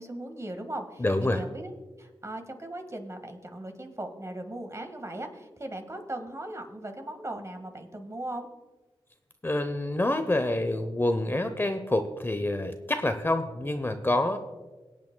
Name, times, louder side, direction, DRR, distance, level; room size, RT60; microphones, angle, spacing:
voice 1, 0.0-1.7 2.0-8.5, right 1 dB, 30° right, 5 dB, 1.7 m, -38 dB
voice 2, 1.0-1.4 9.4-14.4, left 1 dB, 20° left, 7 dB, 0.8 m, -27 dB
23.5 x 8.4 x 2.2 m, 1.2 s
cardioid pair, 50°, 10 cm